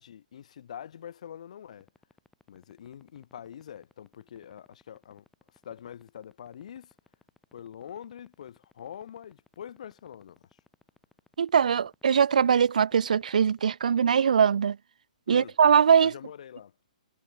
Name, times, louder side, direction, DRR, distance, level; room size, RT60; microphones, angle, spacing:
voice 1, 0.0-1.9 2.5-5.2 5.6-6.9 7.5-10.4 11.6-11.7 15.3-15.6 16.0-16.7, left 9 dB, 60° left, 3.9 m, -44 dB
sound 1, 1.8-14.1, left 3 dB, 5° left, 6.1 m, -58 dB
voice 2, 11.4-14.8 15.3-16.1, right 7 dB, 75° right, 0.4 m, -21 dB
hypercardioid pair, 145°, 4 cm